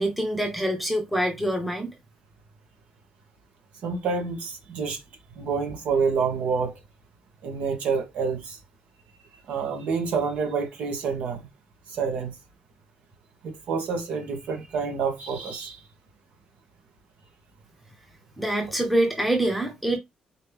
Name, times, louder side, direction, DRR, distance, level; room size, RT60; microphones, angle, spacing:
voice 1, 0.0-1.9 18.4-20.0, right 1 dB, ahead, 0.9 m, -25 dB
voice 2, 3.8-5.0 5.4-6.8 7.4-8.6 9.5-11.5 11.9-12.3 13.4-15.8, right 5 dB, 65° right, 1.5 m, -28 dB
4.3 x 3.2 x 3.4 m
cardioid pair, 180°, 2 cm